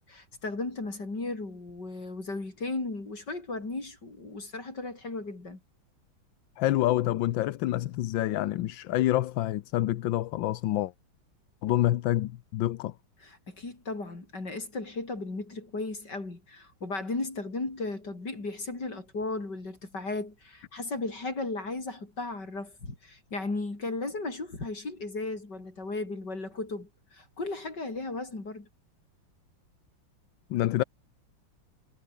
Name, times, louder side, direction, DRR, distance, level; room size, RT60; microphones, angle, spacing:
voice 1, 0.1-5.6 13.2-28.7, left 3 dB, 60° left, 5.8 m, -35 dB
voice 2, 6.6-10.9 11.6-12.9 30.5-30.8, left 14 dB, 75° left, 1.5 m, -27 dB
omnidirectional pair, 2.1 m